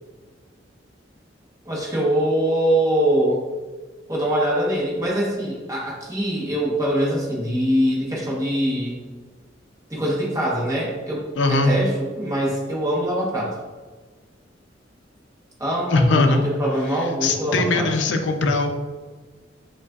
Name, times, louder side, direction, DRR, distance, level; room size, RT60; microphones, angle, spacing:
voice 1, 1.6-3.4 4.1-9.0 9.9-13.6 15.6-17.9, equal, 20° right, -4 dB, 1.0 m, -23 dB
voice 2, 11.4-11.7 15.9-16.4 17.2-18.7, left 2 dB, 75° left, 6 dB, 0.5 m, -20 dB
6.3 x 2.4 x 2.3 m, 1.4 s
head